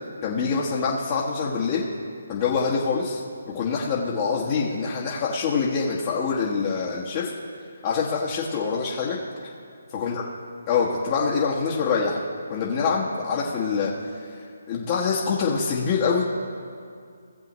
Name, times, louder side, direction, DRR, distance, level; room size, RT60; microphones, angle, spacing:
voice 1, 0.2-1.9 2.3-3.2 3.5-7.3 7.8-9.2 9.9-10.2 10.7-12.2 12.5-16.2, left 5 dB, 30° left, -5 dB, 1.3 m, -25 dB
18.0 x 7.6 x 3.1 m, 2.3 s
figure-of-eight pair, 155°, 0 cm